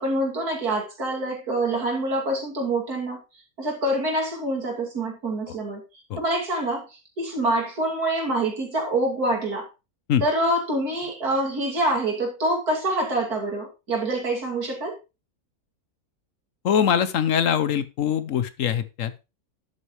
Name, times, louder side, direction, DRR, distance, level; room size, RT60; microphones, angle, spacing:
voice 1, 0.0-3.2 3.6-5.8 6.2-9.7 10.2-15.0, right 1 dB, 80° right, 0 dB, 3.2 m, -26 dB
voice 2, 16.6-19.1, left 8 dB, 65° left, 14 dB, 1.0 m, -23 dB
11.0 x 8.5 x 3.1 m, 0.28 s
omnidirectional pair, 1.6 m